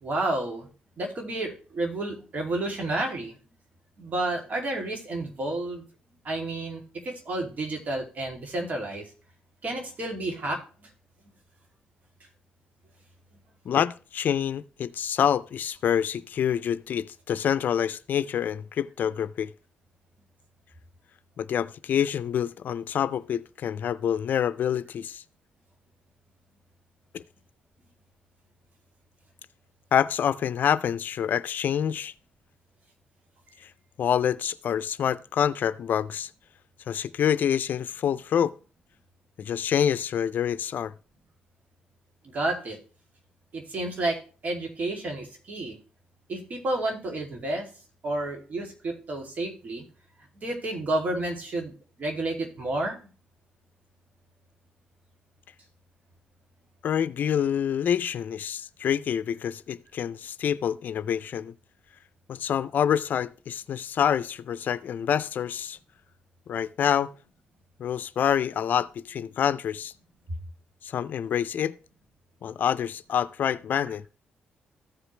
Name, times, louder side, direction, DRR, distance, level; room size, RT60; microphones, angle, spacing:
voice 1, 0.0-0.7 1.0-3.4 4.0-5.9 6.2-9.0 9.6-10.9 42.3-42.8 43.5-45.8 46.3-47.7 48.0-49.8 50.4-51.7 52.0-53.1, right 2 dB, 55° right, 2.6 m, -31 dB
voice 2, 13.7-19.5 21.4-25.2 27.1-27.2 29.9-32.1 33.6-33.7 34.0-36.3 36.9-38.5 39.4-40.9 56.8-61.5 62.3-65.8 66.5-67.1 67.8-69.9 70.8-71.7 72.4-74.0, left 9 dB, 65° left, 0.4 m, -27 dB
14.5 x 5.0 x 3.2 m
cardioid pair, 75°, 3 cm